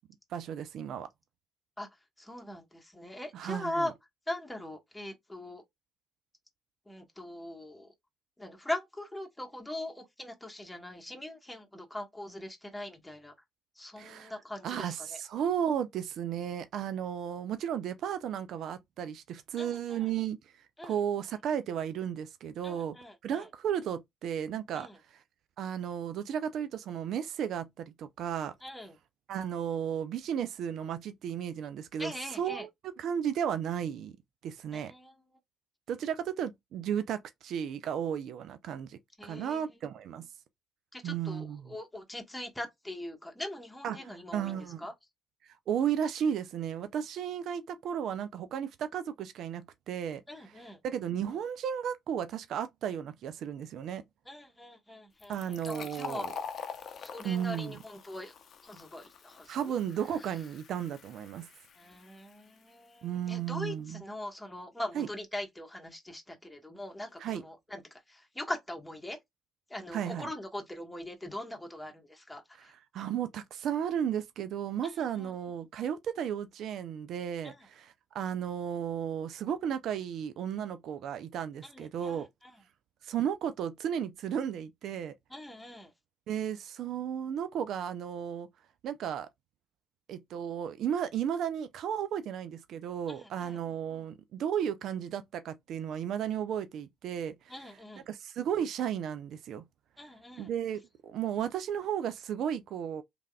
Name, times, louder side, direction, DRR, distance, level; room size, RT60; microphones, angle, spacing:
voice 1, 0.3-1.1 3.3-3.9 14.0-14.3 14.6-20.4 20.8-23.0 23.2-25.2 25.6-28.5 29.3-34.2 34.4-34.9 35.9-40.3 41.0-41.8 43.8-44.9 45.7-54.0 55.3-56.3 57.2-57.8 59.5-61.5 63.0-64.0 64.9-65.1 67.2-67.4 69.9-70.3 72.5-82.3 83.0-85.1 86.3-88.5 88.8-89.3 90.1-97.8 98.1-99.6 100.4-103.0, right 9 dB, 65° right, 0.4 m, -34 dB
voice 2, 2.2-3.9 4.3-5.6 6.9-7.9 8.4-13.3 13.8-14.9 19.6-20.0 20.8-21.0 22.6-23.5 24.7-25.0 28.6-28.9 32.0-32.7 34.7-35.1 39.2-39.7 40.9-44.9 50.3-50.8 54.3-56.3 57.0-58.3 58.6-59.7 61.8-67.8 68.1-69.2 69.7-72.7 75.2-75.3 77.4-77.6 81.6-82.2 85.3-85.9 93.1-93.6 97.5-98.0 100.0-100.5, left 1 dB, 10° left, 1.4 m, -41 dB
Fill (with liquid), 55.2-62.6, left 6 dB, 55° left, 0.6 m, -45 dB
3.3 x 3.3 x 2.3 m
hypercardioid pair, 55°, 0 cm